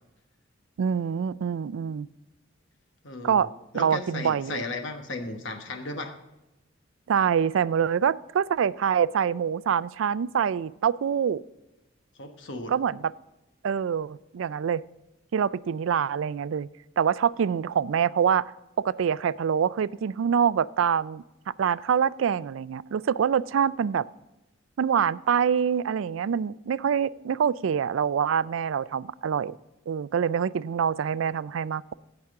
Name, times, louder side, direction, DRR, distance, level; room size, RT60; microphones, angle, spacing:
voice 1, 0.8-2.1 3.2-3.5 3.7-4.6 7.1-11.4 12.7-13.1 13.6-14.8 15.3-16.7 17.0-18.5 18.8-21.2 21.6-24.0 24.8-29.6 29.9-32.0, right 7 dB, 75° right, 18 dB, 0.3 m, -25 dB
voice 2, 3.0-3.5 3.7-6.1 12.2-12.7, left 2 dB, 65° left, 5 dB, 1.2 m, -35 dB
16.0 x 5.9 x 3.6 m, 0.97 s
head